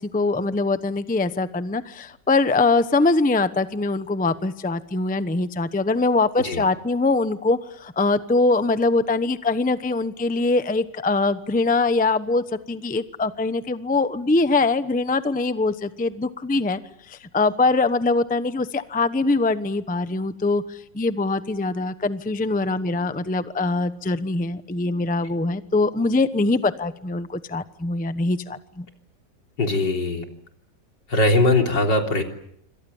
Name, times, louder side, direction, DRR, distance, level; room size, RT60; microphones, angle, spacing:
voice 1, 0.0-16.8 17.1-28.8, left 3 dB, 10° left, 12 dB, 0.6 m, -23 dB
voice 2, 29.6-30.3 31.1-32.2, left 2 dB, 80° left, 3 dB, 4.1 m, -20 dB
27.5 x 25.5 x 7.2 m, 0.71 s
omnidirectional pair, 1.9 m